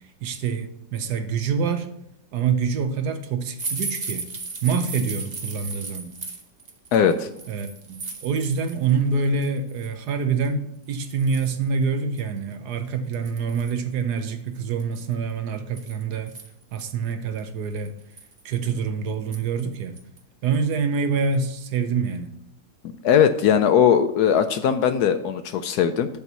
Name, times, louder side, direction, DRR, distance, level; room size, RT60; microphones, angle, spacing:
voice 1, 0.2-1.9 2.3-4.3 4.6-6.1 7.5-16.3 16.7-17.9 18.4-20.0 20.4-22.3, right 5 dB, 70° right, 1.2 m, -26 dB
sound 1, 3.6-8.9 9.3-9.9 10.4-10.5 10.9-11.6 12.2-12.3 12.5-12.6 13.1-13.8 14.8-16.8 17.4-17.5 17.9-18.4 19.3-19.6 20.0-20.2 20.5-20.6, right 3 dB, 35° right, 0.7 m, -35 dB
voice 2, 6.9-7.3 23.0-26.1, left 8 dB, 70° left, 1.0 m, -19 dB
7.0 x 4.6 x 6.6 m
omnidirectional pair, 2.0 m